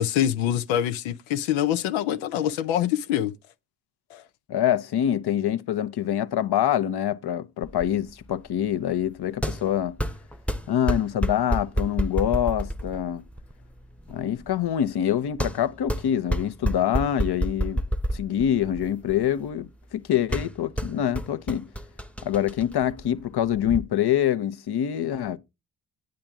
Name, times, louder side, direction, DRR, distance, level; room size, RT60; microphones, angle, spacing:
voice 1, 0.0-3.3 4.1-4.2, left 11 dB, 85° left, 0.7 m, -25 dB
voice 2, 4.5-10.0 10.7-13.2 14.1-17.8 18.1-21.7 22.2-25.4, left 10 dB, 55° left, 0.9 m, -25 dB
sound 1, 7.6-23.8, equal, 5° left, 0.9 m, -31 dB
9.1 x 8.7 x 3.6 m
hypercardioid pair, 45°, 46 cm